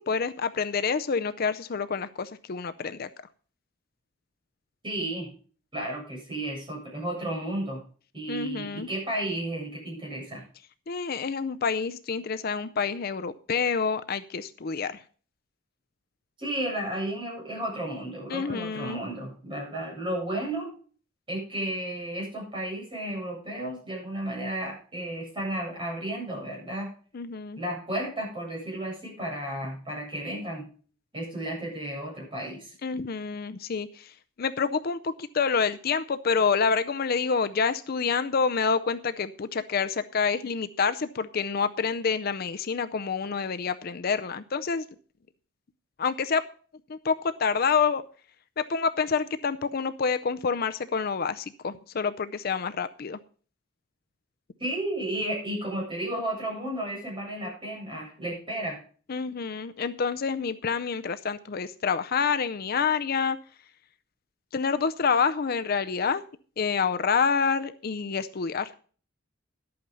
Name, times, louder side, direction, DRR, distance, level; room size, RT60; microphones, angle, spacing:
voice 1, 0.0-3.1 8.3-8.9 10.9-15.0 18.3-19.0 27.1-27.6 32.8-44.8 46.0-46.4 46.9-48.0 48.6-53.2 59.1-63.4 64.5-66.2 66.6-68.7, left 5 dB, 50° left, 11 dB, 0.5 m, -27 dB
voice 2, 4.8-5.3 5.7-7.8 8.1-10.4 16.4-20.7 21.3-26.9 27.6-30.6 31.1-32.7 54.6-58.8, right 1 dB, 25° right, -3 dB, 7.9 m, -33 dB
11.5 x 8.6 x 5.4 m, 0.41 s
head